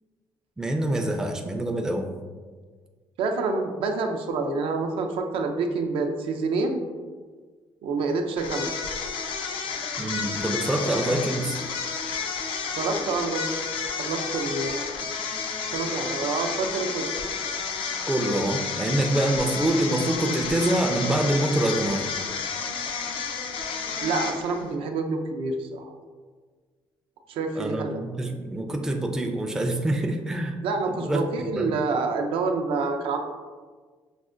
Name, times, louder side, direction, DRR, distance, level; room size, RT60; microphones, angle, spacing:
voice 1, 0.6-2.1 10.0-11.6 18.1-22.2 27.6-30.6 30.9-31.7, right 1 dB, 5° right, 2 dB, 0.3 m, -26 dB
voice 2, 3.2-6.8 7.8-8.7 12.8-13.5 14.0-14.8 15.7-17.1 24.0-25.9 27.3-27.9 30.6-33.2, right 3 dB, 80° right, 4 dB, 0.4 m, -27 dB
sound 1, 8.4-24.7, left 5 dB, 75° left, 0.4 m, -31 dB
5.9 x 2.1 x 2.5 m, 1.5 s
cardioid pair, 130°, 9 cm